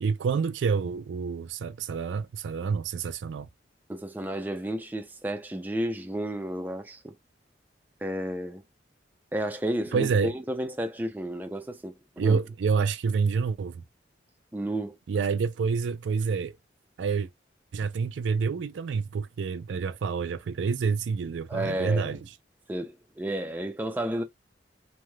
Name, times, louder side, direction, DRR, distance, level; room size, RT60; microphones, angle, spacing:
voice 1, 0.0-3.5 9.9-10.3 12.2-13.8 15.1-16.6 17.0-17.3 17.7-22.2, right 5 dB, 85° right, 0.4 m, -28 dB
voice 2, 3.9-7.2 8.0-8.6 9.3-12.4 14.5-15.0 21.5-22.2 22.7-24.2, right 1 dB, 10° right, 0.4 m, -32 dB
3.1 x 2.6 x 2.2 m
head